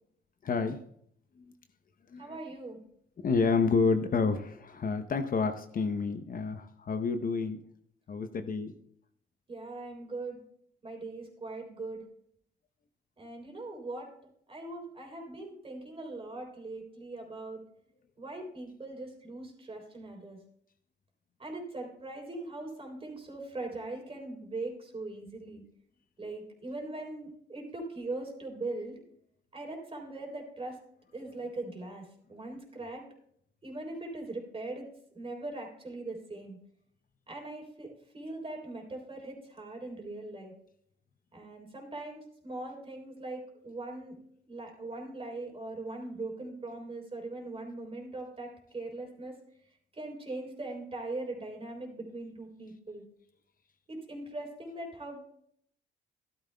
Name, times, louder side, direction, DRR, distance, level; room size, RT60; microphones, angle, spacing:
voice 1, 0.4-0.8 1.4-1.5 2.1-2.4 3.2-7.6 8.1-8.7, left 4 dB, 45° left, 7 dB, 0.8 m, -29 dB
voice 2, 2.2-2.8 9.5-10.4 10.8-12.0 13.2-14.1 14.5-17.6 18.2-20.4 21.4-25.6 26.2-28.9 29.5-30.8 31.1-33.1 33.6-34.9 35.1-36.6 37.3-40.5 41.3-44.1 44.5-49.3 49.9-53.0 53.9-55.2, right 2 dB, 30° right, 1 dB, 3.5 m, -40 dB
13.5 x 12.0 x 2.3 m, 0.68 s
cardioid pair, 90°, 20 cm